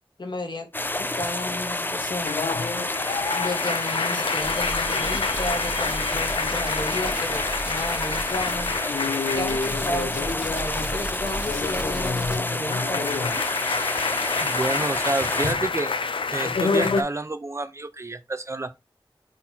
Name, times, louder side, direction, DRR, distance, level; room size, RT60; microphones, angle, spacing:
voice 1, 0.2-0.7 1.0-2.4 3.3-8.7 9.3-13.3, left 2 dB, 55° left, 1.0 m, -33 dB
sound 1, 0.7-15.5, left 2 dB, 20° left, 0.4 m, -29 dB
sound 2, 2.2-11.0 11.3-17.0, left 4 dB, 75° left, 0.4 m, -28 dB
sound 3, 4.4-12.4, right 1 dB, 10° right, 1.8 m, -36 dB
voice 2, 14.4-15.9 16.3-18.7, right 2 dB, 30° right, 0.6 m, -29 dB
4.2 x 3.7 x 2.8 m
wide cardioid pair, 60°, 9 cm